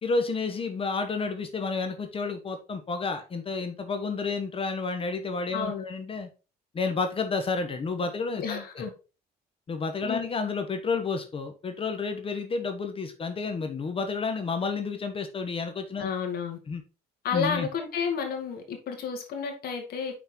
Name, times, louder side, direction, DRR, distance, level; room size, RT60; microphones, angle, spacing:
voice 1, 0.0-6.3 6.7-8.8 9.7-16.1 16.7-16.8 17.3-17.7, left 4 dB, 35° left, 1.0 m, -30 dB
voice 2, 5.5-5.8 8.4-8.9 10.0-10.2 16.0-16.6 17.2-20.2, left 6 dB, 65° left, 2.1 m, -31 dB
5.8 x 4.4 x 4.4 m
cardioid pair, 110°, 17 cm